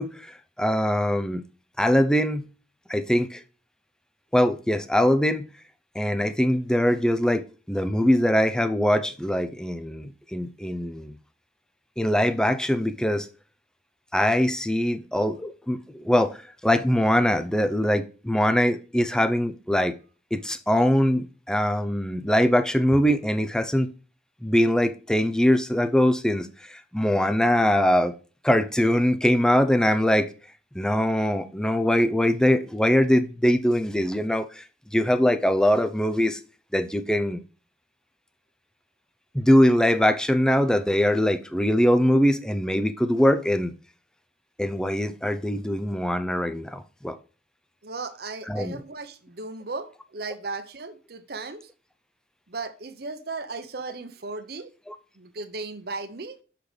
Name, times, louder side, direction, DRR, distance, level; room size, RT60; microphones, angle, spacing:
voice 1, 0.0-1.4 1.8-2.5 2.9-3.4 4.3-5.5 5.9-11.1 12.0-13.3 14.1-20.0 20.3-23.9 24.4-28.1 28.4-30.3 30.7-34.6 34.9-36.4 36.7-37.4 39.3-43.7 44.6-47.2 48.5-48.8 54.9-55.0, equal, 5° left, 0.4 m, -22 dB
voice 2, 47.8-51.7 52.5-54.7 55.2-56.4, right 3 dB, 55° right, 0.8 m, -36 dB
6.6 x 5.9 x 3.3 m
head